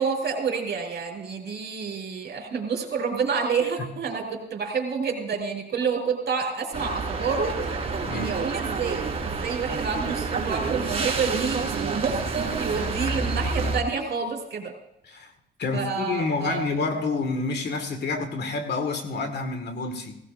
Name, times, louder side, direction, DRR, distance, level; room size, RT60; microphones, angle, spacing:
voice 1, 0.0-7.5 8.1-14.7 15.7-16.6, right 5 dB, 55° right, 3.8 m, -28 dB
barcelona night street city, 6.7-13.8, right 4 dB, 30° right, 2.6 m, -28 dB
voice 2, 15.6-20.2, left 3 dB, 60° left, 1.8 m, -28 dB
17.0 x 17.0 x 2.5 m
cardioid pair, 90°, 20 cm